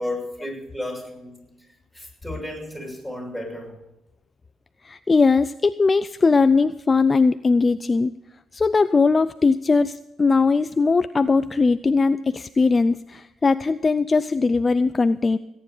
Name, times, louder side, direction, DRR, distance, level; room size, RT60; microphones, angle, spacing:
voice 1, 0.0-1.4 1.9-3.7, left 1 dB, 5° right, 1 dB, 6.3 m, -33 dB
voice 2, 4.8-8.1 8.5-15.4, left 4 dB, 30° left, 12 dB, 0.5 m, -20 dB
18.0 x 9.8 x 5.1 m, 0.91 s
cardioid pair, 90°, 0 cm